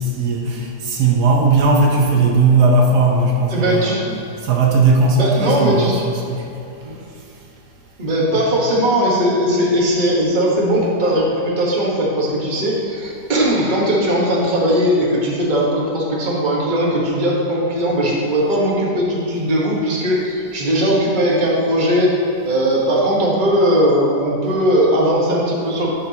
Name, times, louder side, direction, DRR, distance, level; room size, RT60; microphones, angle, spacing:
voice 1, 0.0-4.0 4.4-6.5 8.3-8.4, right 3 dB, 75° right, -1 dB, 1.4 m, -17 dB
voice 2, 3.5-4.1 5.1-6.0 6.8-6.9 8.0-22.1 22.4-25.9, equal, 30° right, -4 dB, 1.3 m, -18 dB
11.5 x 5.8 x 2.8 m, 2.8 s
omnidirectional pair, 1.7 m